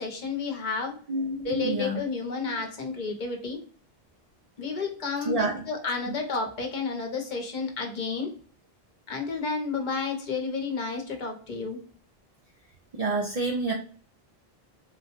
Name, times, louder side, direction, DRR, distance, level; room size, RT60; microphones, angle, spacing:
voice 1, 0.0-0.9 1.4-3.6 4.6-8.3 9.1-11.8, left 4 dB, 50° left, 3 dB, 0.9 m, -31 dB
voice 2, 1.1-2.0 2.4-2.5 5.3-5.6 13.0-13.7, right 2 dB, 55° right, 2 dB, 0.4 m, -28 dB
3.6 x 2.2 x 2.9 m, 0.43 s
omnidirectional pair, 1.0 m